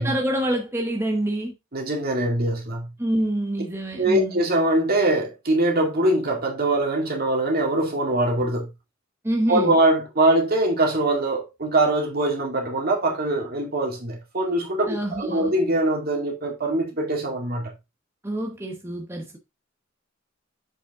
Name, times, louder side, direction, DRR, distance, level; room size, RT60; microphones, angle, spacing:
voice 1, 0.0-1.5 3.0-4.4 9.2-9.7 14.9-15.5 18.2-19.4, right 1 dB, 15° right, 1.0 m, -26 dB
voice 2, 1.7-2.9 3.9-8.7 9.5-17.7, right 1 dB, 50° right, 2.2 m, -22 dB
7.6 x 5.1 x 3.6 m
head